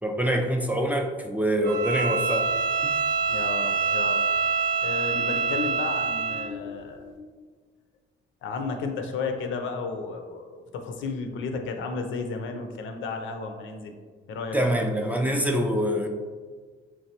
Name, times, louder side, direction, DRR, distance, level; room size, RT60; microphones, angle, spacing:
voice 1, 0.0-2.5 2.8-2.9 14.5-16.1, equal, 10° right, 2 dB, 0.4 m, -25 dB
Bowed string instrument, 1.6-6.5, right 5 dB, 80° right, 0.6 m, -25 dB
voice 2, 3.3-4.2 4.8-7.3 8.4-13.9 14.3-14.6, left 4 dB, 75° left, 5 dB, 0.5 m, -33 dB
3.4 x 3.2 x 2.8 m, 1.5 s
cardioid pair, 90°, 20 cm